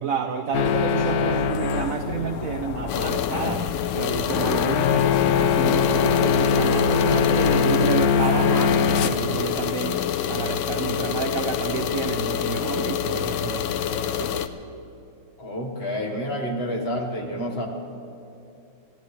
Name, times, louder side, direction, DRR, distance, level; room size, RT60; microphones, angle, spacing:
voice 1, 0.0-10.0 10.3-14.3, right 7 dB, 65° right, 6 dB, 0.8 m, -30 dB
sound 1, 0.5-9.1, left 6 dB, 70° left, 0.9 m, -22 dB
sound 2, 2.9-14.5, left 9 dB, 85° left, 1.4 m, -27 dB
voice 2, 15.4-17.7, equal, 35° left, 1 dB, 1.5 m, -29 dB
27.0 x 14.5 x 3.2 m, 2.7 s
omnidirectional pair, 2.2 m